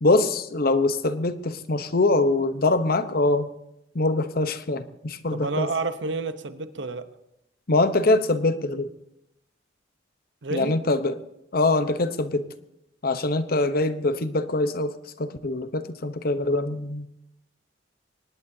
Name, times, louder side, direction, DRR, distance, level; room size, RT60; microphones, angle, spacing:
voice 1, 0.0-3.5 3.9-5.7 7.7-8.9 10.5-11.2 11.5-12.4 13.0-17.1, left 2 dB, 50° left, 11 dB, 0.9 m, -23 dB
voice 2, 5.3-7.1 10.4-10.8, right 3 dB, 70° right, 11 dB, 0.9 m, -30 dB
23.5 x 19.5 x 2.8 m, 0.83 s
head